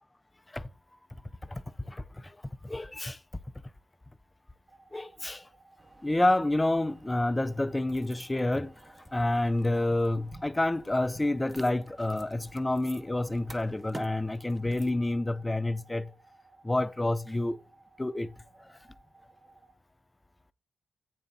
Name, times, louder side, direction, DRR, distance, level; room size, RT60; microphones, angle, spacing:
voice 1, 1.9-2.4 2.6-3.2 4.9-5.4 6.0-8.7 9.1-16.1 16.6-17.6 18.0-18.4 18.7-18.8, left 1 dB, 15° left, 0.5 m, -29 dB
sound 1, 4.7-19.7, right 3 dB, 30° right, 3.3 m, -59 dB
sound 2, 5.8-15.0, right 1 dB, 15° right, 1.0 m, -50 dB
8.4 x 7.1 x 3.8 m
cardioid pair, 100°, 0 cm